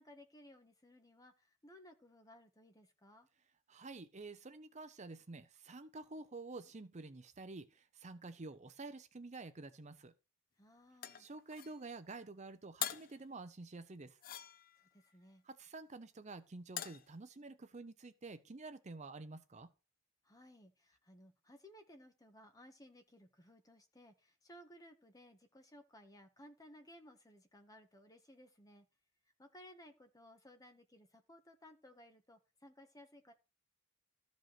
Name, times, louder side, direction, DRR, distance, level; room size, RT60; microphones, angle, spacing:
voice 1, 0.0-3.3 10.6-11.3 14.7-15.4 20.2-28.9 29.4-33.3, left 1 dB, 15° left, 1.5 m, -60 dB
voice 2, 3.7-10.1 11.2-14.2 15.4-19.7, right 3 dB, 35° right, 0.6 m, -49 dB
sound 1, 11.0-11.8 12.8-13.2 14.2-14.9 16.8-17.1, left 11 dB, 45° left, 0.6 m, -43 dB
13.5 x 5.3 x 5.9 m
head